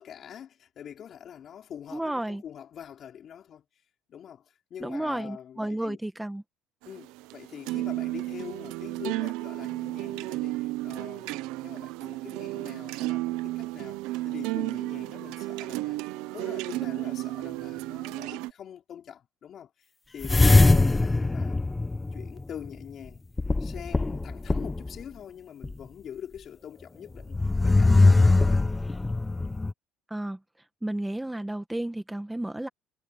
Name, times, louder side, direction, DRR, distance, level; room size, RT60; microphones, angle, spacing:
voice 1, 0.0-3.6 4.1-6.0 6.8-14.0 14.2-16.0 16.3-21.5 22.1-23.2 23.6-28.7, left 9 dB, 45° left, 5.0 m, -44 dB
voice 2, 1.9-2.4 4.8-6.4 30.1-30.4 30.8-32.7, right 1 dB, 5° right, 1.3 m, -32 dB
sound 1, 6.8-18.5, right 18 dB, 85° right, 0.9 m, -33 dB
sound 2, 20.2-22.7 23.4-25.0 25.6-25.7 27.2-29.7, left 3 dB, 15° left, 1.1 m, -21 dB
cardioid pair, 115°, 0 cm